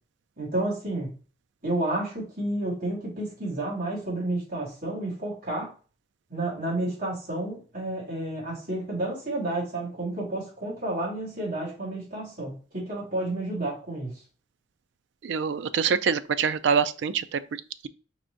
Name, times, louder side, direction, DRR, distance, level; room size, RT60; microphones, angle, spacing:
voice 1, 0.4-1.1 1.6-5.7 6.3-14.1, right 1 dB, 50° right, 2.5 m, -31 dB
voice 2, 15.2-17.9, right 6 dB, 65° right, 0.3 m, -26 dB
4.8 x 2.5 x 3.8 m
head